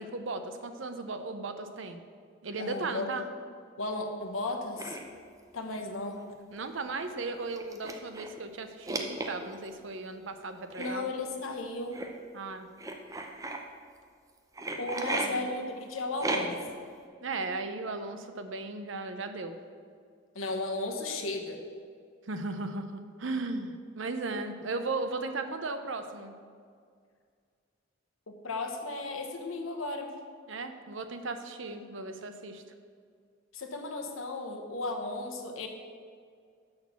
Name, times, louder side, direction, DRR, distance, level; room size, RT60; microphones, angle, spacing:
voice 1, 0.0-2.0 2.4-3.2 6.5-11.1 12.3-12.7 15.2-15.5 17.2-19.6 22.3-26.3 30.5-32.6, right 3 dB, 70° right, 8 dB, 0.7 m, -36 dB
voice 2, 2.6-3.2 3.8-5.0 5.5-6.2 10.8-12.0 14.8-16.6 20.3-21.6 28.3-30.1 33.5-35.7, left 2 dB, 85° left, 4 dB, 1.0 m, -35 dB
sound 1, 4.8-5.0 6.2-6.3 6.6-6.7 7.5-8.4 8.9-9.7 10.7-10.9 11.9-12.1 12.8-13.6 14.6-15.3 16.2-16.7, right 2 dB, 15° right, 0.6 m, -34 dB
6.5 x 6.2 x 7.0 m, 2.1 s
head